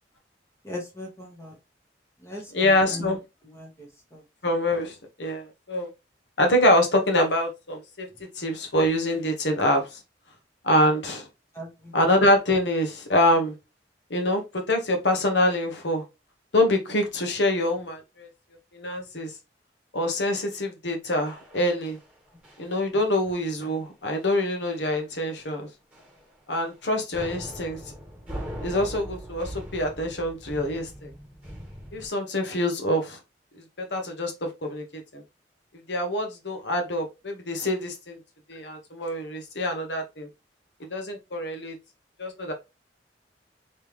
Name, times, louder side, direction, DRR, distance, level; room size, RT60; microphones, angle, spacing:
voice 1, 0.6-1.6 2.2-3.2 3.4-4.2 11.5-11.9, left 1 dB, 15° left, 1.1 m, -39 dB
voice 2, 2.5-3.2 4.4-5.9 6.4-8.1 8.4-10.0 10.6-11.3 11.9-13.5 14.1-16.0 16.5-18.3 18.7-19.3 19.9-22.0 22.6-25.7 26.5-27.8 28.6-31.1 31.9-33.2 33.5-35.2 35.9-38.2 38.5-40.3 40.9-41.7 42.2-42.5, left 1 dB, 70° left, 1.2 m, -25 dB
sound 1, 21.3-22.1 22.4-22.8 23.0-23.3 23.6-23.8 24.2-24.3 24.7-25.1 25.3-25.5 25.9-26.8 27.1-32.1, equal, 10° right, 1.6 m, -41 dB
3.5 x 3.2 x 3.1 m
head